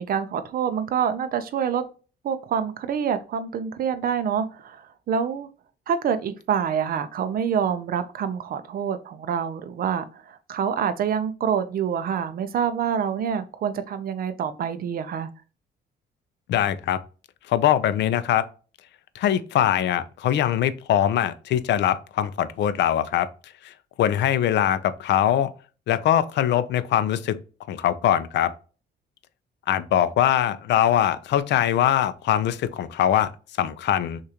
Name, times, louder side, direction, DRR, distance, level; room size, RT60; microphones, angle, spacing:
voice 1, 0.0-1.9 2.2-5.5 5.9-15.3, right 7 dB, 50° right, 0.6 m, -26 dB
voice 2, 16.5-17.0 17.5-18.4 19.1-23.3 23.6-25.5 25.9-27.4 27.7-28.5 29.7-33.3 33.6-34.2, left 11 dB, 70° left, 0.5 m, -22 dB
6.4 x 2.5 x 2.8 m
cardioid pair, 155°, 19 cm